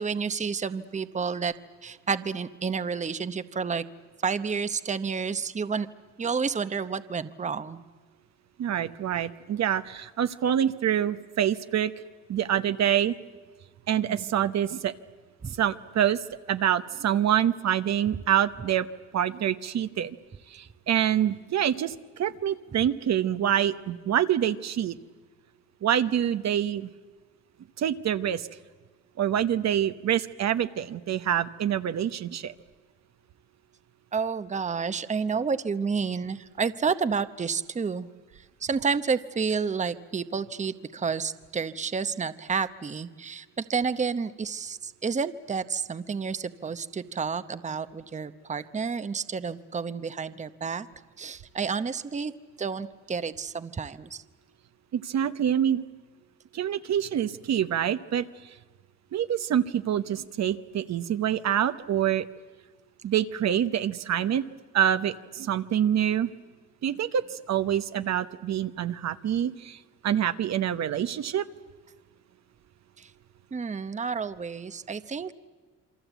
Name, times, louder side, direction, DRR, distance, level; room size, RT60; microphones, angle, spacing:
voice 1, 0.0-1.5 1.8-3.8 4.2-5.9 6.2-7.8 14.1-14.2 34.1-38.1 38.6-50.9 51.2-52.3 52.6-54.2 73.0-73.1 73.5-75.3, right 5 dB, 25° right, 12 dB, 0.9 m, -30 dB
voice 2, 8.6-11.9 12.3-13.1 13.9-14.9 15.6-16.2 16.5-18.9 19.1-20.2 20.5-25.0 25.8-26.9 27.8-28.5 29.2-32.5 54.9-55.8 56.5-58.3 59.1-62.2 63.0-64.4 64.7-66.3 66.8-69.8 70.0-71.5, right 10 dB, 60° right, 11 dB, 1.0 m, -26 dB
27.5 x 24.0 x 8.2 m, 1.4 s
cardioid pair, 90°, 30 cm